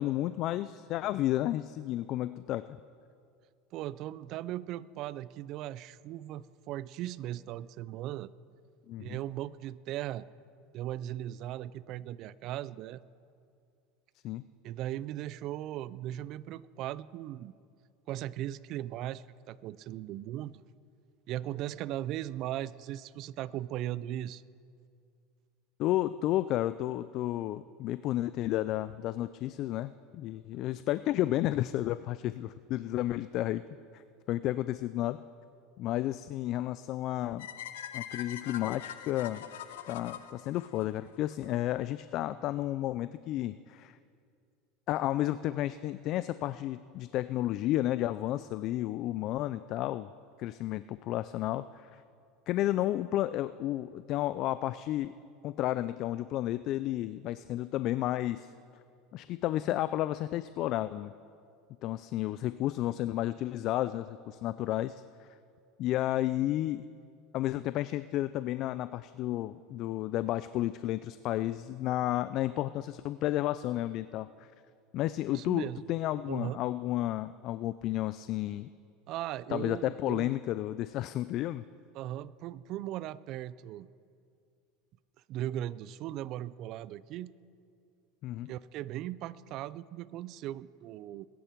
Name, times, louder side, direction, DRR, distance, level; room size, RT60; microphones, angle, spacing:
voice 1, 0.0-2.7 8.9-9.2 14.2-14.4 25.8-33.6 33.9-35.2 35.8-37.5 37.9-39.4 39.9-44.0 44.9-50.1 50.4-51.9 52.5-55.1 55.4-58.5 59.1-61.1 61.8-65.3 65.8-66.9 67.3-74.3 74.9-78.7 79.5-81.6 88.2-88.5, left 14 dB, 50° left, 14 dB, 0.3 m, -32 dB
voice 2, 3.7-8.3 9.0-10.2 10.7-13.0 14.6-17.5 18.1-20.6 21.3-24.4 75.3-75.8 76.3-76.6 79.1-80.3 81.9-83.9 85.3-87.3 88.5-91.3, right 13 dB, 50° right, 18 dB, 0.4 m, -38 dB
sound 1, 37.4-41.5, left 10 dB, 90° left, 0.7 m, -43 dB
20.5 x 10.0 x 4.5 m, 2.3 s
supercardioid pair, 125°, 0 cm